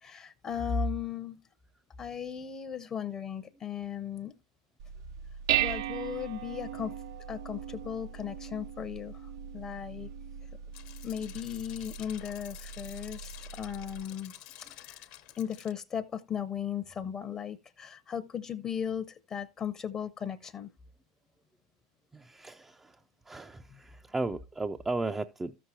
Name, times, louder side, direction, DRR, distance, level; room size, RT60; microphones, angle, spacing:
voice 1, 0.0-1.4 2.0-4.3 5.6-6.9 7.3-10.1 11.0-14.3 14.7-15.1 15.4-20.7, left 7 dB, 30° left, 0.7 m, -36 dB
Dishes pots and pans, 4.8-14.0, right 11 dB, 70° right, 0.6 m, -37 dB
sound 1, 10.7-15.7, left 13 dB, 60° left, 0.9 m, -49 dB
voice 2, 22.1-23.0 23.3-25.5, right 3 dB, 15° right, 0.4 m, -35 dB
14.0 x 6.3 x 2.7 m
hypercardioid pair, 85°, 3 cm